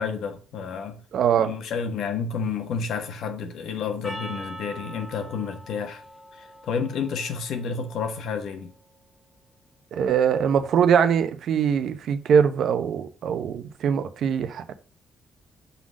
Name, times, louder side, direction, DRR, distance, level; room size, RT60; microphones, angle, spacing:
voice 1, 0.0-1.0 1.4-6.0 6.3-8.7, left 5 dB, 75° left, 1.3 m, -30 dB
voice 2, 1.1-1.5 9.9-14.7, right 7 dB, 70° right, 0.8 m, -22 dB
Percussion, 4.0-8.6, right 1 dB, 25° left, 1.9 m, -43 dB
5.8 x 4.0 x 6.2 m
cardioid pair, 90°, 0 cm